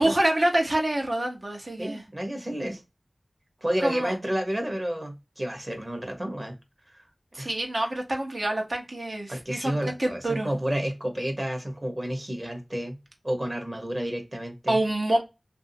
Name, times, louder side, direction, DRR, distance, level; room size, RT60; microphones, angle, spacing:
voice 1, 0.0-2.0 3.8-4.1 7.3-10.5 14.7-15.2, right 1 dB, 60° right, 0.9 m, -26 dB
voice 2, 1.8-2.8 3.6-6.6 6.9-7.0 7.4-7.5 9.3-13.0 13.2-14.8, equal, 35° right, 1.0 m, -30 dB
3.2 x 2.6 x 2.6 m
wide cardioid pair, 55°, 0 cm